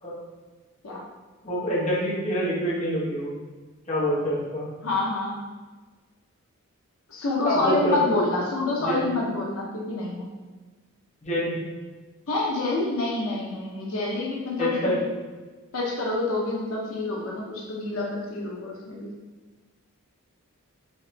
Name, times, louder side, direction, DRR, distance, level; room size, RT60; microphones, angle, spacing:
voice 1, 1.4-3.3 3.9-4.7 7.4-8.2 8.8-9.0 11.2-11.6 14.6-15.0, equal, 30° left, -7 dB, 1.0 m, -26 dB
voice 2, 4.8-5.4 7.1-10.3 12.3-15.0 15.7-19.1, left 2 dB, 80° left, -2 dB, 0.7 m, -27 dB
4.2 x 2.9 x 3.3 m, 1.3 s
head